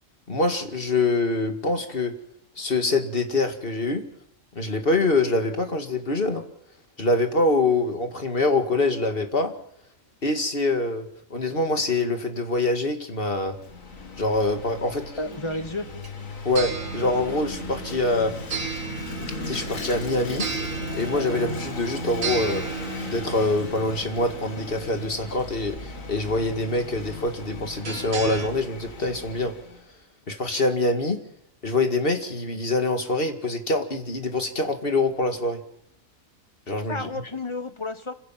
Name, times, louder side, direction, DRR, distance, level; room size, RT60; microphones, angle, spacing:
voice 1, 0.3-2.1 2.6-4.0 4.6-6.4 7.0-9.5 10.2-13.6 14.2-15.1 16.5-18.3 19.5-20.5 20.9-22.6 23.1-29.5 30.3-31.2 31.6-35.6 36.7-37.1, left 2 dB, 45° left, 6 dB, 2.2 m, -25 dB
Vehicle / Engine, 13.4-29.9, left 3 dB, 80° left, 2.6 m, -37 dB
voice 2, 15.2-15.9 36.9-38.1, left 2 dB, 20° left, 10 dB, 1.3 m, -31 dB
sound 1, 15.7-28.5, right 5 dB, 80° right, 2.2 m, -35 dB
26.5 x 16.0 x 7.4 m, 0.76 s
omnidirectional pair, 1.4 m